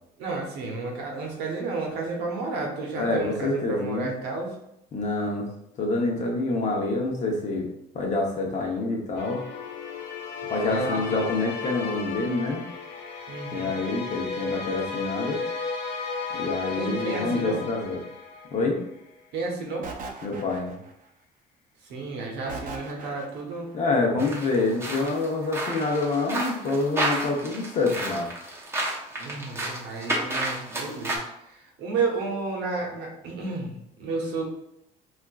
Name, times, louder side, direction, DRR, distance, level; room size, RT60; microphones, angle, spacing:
voice 1, 0.2-4.6 10.7-11.2 13.3-13.8 16.8-17.6 19.3-19.9 21.8-23.7 29.2-34.5, right 3 dB, 90° right, 0 dB, 0.9 m, -32 dB
voice 2, 3.0-4.1 4.9-5.5 5.8-7.7 7.9-9.4 10.5-12.6 13.5-15.4 16.3-18.0 18.5-18.8 20.2-20.7 23.7-28.3, left 3 dB, 45° left, 1 dB, 0.8 m, -27 dB
sound 1, 9.2-18.9, left 5 dB, 75° left, 0.7 m, -34 dB
sound 2, 19.8-21.1 22.5-23.6, right 4 dB, 55° right, 0.6 m, -39 dB
sound 3, 24.2-31.2, right 1 dB, 15° right, 0.9 m, -31 dB
4.3 x 2.4 x 2.3 m, 0.79 s
cardioid pair, 110°, 17 cm